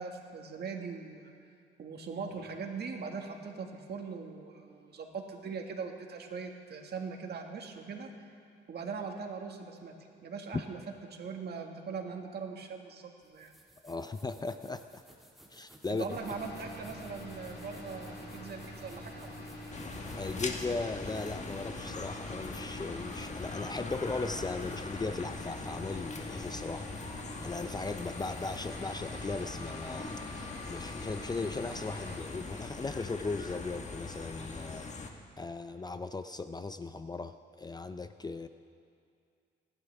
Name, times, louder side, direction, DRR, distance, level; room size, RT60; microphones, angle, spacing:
voice 1, 0.0-1.3 1.8-8.3 8.7-9.9 10.2-10.8 11.1-13.5 16.0-19.5, right 5 dB, 55° right, 2 dB, 1.9 m, -41 dB
sound 1, 13.2-21.5, right 1 dB, ahead, 2.0 m, -59 dB
voice 2, 13.8-15.0 15.5-16.2 20.2-26.9 27.4-35.1 35.4-38.5, left 3 dB, 20° left, 10 dB, 0.5 m, -38 dB
sound 2, 16.1-32.2, left 1 dB, 55° left, 3.7 m, -45 dB
sound 3, 19.7-35.1, left 3 dB, 35° left, 1.4 m, -42 dB
28.0 x 11.5 x 3.5 m, 2.3 s
cardioid pair, 90°, 20 cm